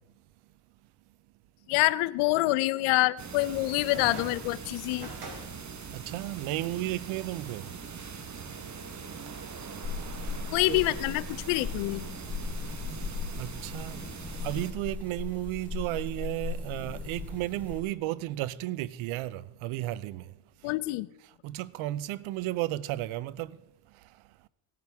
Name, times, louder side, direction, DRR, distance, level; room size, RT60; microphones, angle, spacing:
voice 1, 1.7-5.1 10.5-12.1 20.6-21.1, left 19 dB, 85° left, 0.6 m, -26 dB
sound 1, 3.2-14.7, right 6 dB, 35° right, 1.2 m, -42 dB
sound 2, 3.9-11.2, right 1 dB, 50° right, 3.5 m, -49 dB
voice 2, 5.9-7.7 10.7-10.9 13.4-14.0 14.4-20.3 21.4-23.6, right 16 dB, 75° right, 0.6 m, -33 dB
sound 3, 9.8-17.8, left 4 dB, 5° left, 3.5 m, -38 dB
17.0 x 10.5 x 3.5 m
cardioid pair, 80°, 48 cm